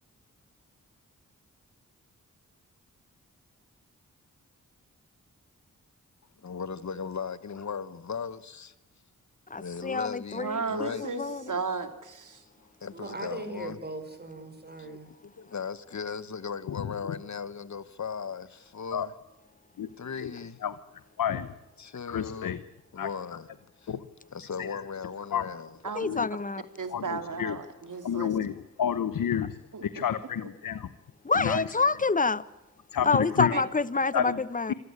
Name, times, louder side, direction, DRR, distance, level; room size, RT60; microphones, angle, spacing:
voice 1, 6.4-8.7 9.6-11.1 12.8-13.8 14.8-19.1 20.0-20.6 21.8-22.6 22.9-23.5 23.8-23.9 24.3-25.8 27.3-27.4 30.4-30.5, left 6 dB, 60° left, 1.3 m, -37 dB
voice 2, 9.5-11.4 25.9-26.6 31.2-32.4 33.0-34.7, left 4 dB, 25° left, 1.0 m, -27 dB
voice 3, 10.4-12.4 25.8-26.1 26.8-28.3 29.7-30.0 33.0-33.2 33.5-33.6, right 4 dB, 65° right, 2.7 m, -34 dB
voice 4, 12.9-15.1, right 2 dB, 30° right, 5.2 m, -39 dB
voice 5, 21.2-21.5 22.1-22.6 23.0-23.1 23.9-24.0 24.6-24.8 25.3-25.4 26.0-26.3 26.9-27.6 28.0-30.9 31.3-31.6 32.9-33.5 34.1-34.4 34.7-34.8, left 9 dB, 85° left, 1.0 m, -30 dB
26.5 x 15.0 x 9.8 m
cardioid pair, 45°, 33 cm